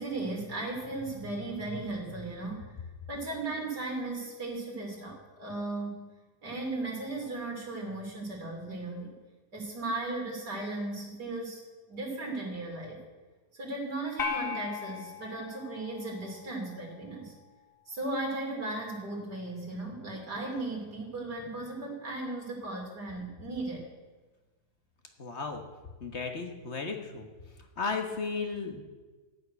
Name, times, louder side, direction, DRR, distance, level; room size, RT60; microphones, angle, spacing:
voice 1, 0.0-2.8 3.1-6.1 6.4-9.1 9.5-11.6 11.9-13.0 13.5-17.3 17.9-23.8, right 2 dB, 85° right, -1 dB, 3.9 m, -36 dB
sound 1, 14.2-16.7, left 6 dB, 85° left, 1.8 m, -37 dB
voice 2, 25.2-25.6 26.0-27.3 27.6-28.8, left 4 dB, 45° left, 4 dB, 1.4 m, -34 dB
14.0 x 6.5 x 9.5 m, 1.3 s
omnidirectional pair, 1.7 m